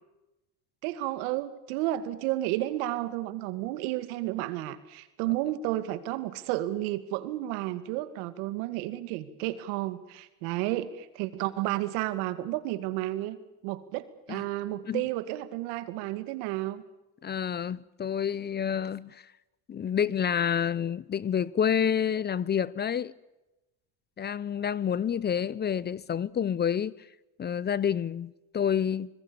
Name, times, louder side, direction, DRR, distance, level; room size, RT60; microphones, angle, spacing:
voice 1, 0.8-13.4 13.6-16.8, right 15 dB, 85° right, 2.3 m, -32 dB
voice 2, 17.2-19.2 19.7-23.1 24.2-26.9 27.4-29.1, left 8 dB, 25° left, 0.7 m, -28 dB
26.0 x 21.5 x 7.0 m
cardioid pair, 115°, 38 cm